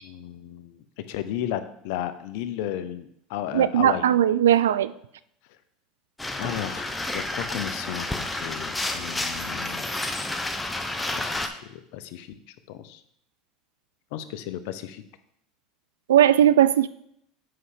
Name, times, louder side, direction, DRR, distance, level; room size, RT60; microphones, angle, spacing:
voice 1, 0.0-4.1 6.4-9.8 11.1-12.3 12.7-13.0 14.1-15.0, left 11 dB, 70° left, 11 dB, 0.7 m, -34 dB
voice 2, 3.5-4.9 16.1-16.9, right 11 dB, 90° right, 16 dB, 0.3 m, -18 dB
sound 1, 6.2-11.5, left 2 dB, 10° left, 1.0 m, -30 dB
7.8 x 5.6 x 5.0 m, 0.73 s
hypercardioid pair, 90°, 0 cm